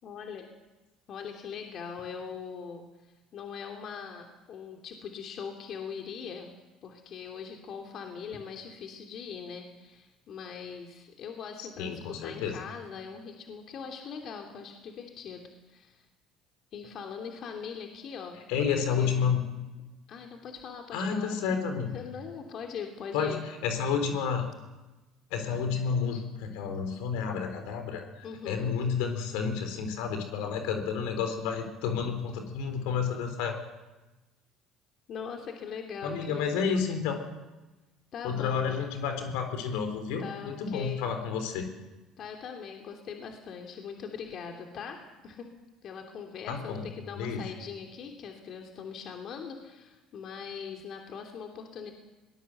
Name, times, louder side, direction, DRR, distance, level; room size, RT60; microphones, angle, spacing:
voice 1, 0.0-0.5 1.1-2.8 3.3-6.5 6.8-16.0 16.7-19.3 20.1-23.4 28.2-28.8 35.1-36.8 38.1-38.8 40.2-41.1 42.2-45.0 45.2-45.5 45.8-51.9, left 6 dB, 55° left, 3 dB, 3.0 m, -41 dB
voice 2, 11.6-12.6 18.5-19.4 20.9-21.9 23.1-23.4 23.6-24.5 25.3-33.5 36.0-37.2 38.2-41.7 46.5-46.9 47.2-47.5, left 6 dB, 80° left, 6 dB, 3.9 m, -30 dB
22.0 x 19.0 x 8.0 m, 1.1 s
hypercardioid pair, 75°, 0 cm